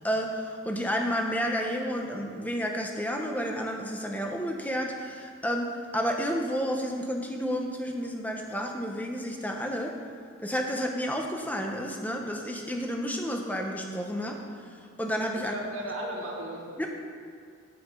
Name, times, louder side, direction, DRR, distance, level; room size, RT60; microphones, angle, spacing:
voice 1, 0.0-9.9 10.4-14.4 15.0-15.5 16.8-16.9, equal, 10° left, 2 dB, 0.9 m, -31 dB
voice 2, 15.3-16.9, right 1 dB, 85° right, -3 dB, 1.5 m, -36 dB
9.6 x 7.8 x 5.4 m, 2.2 s
head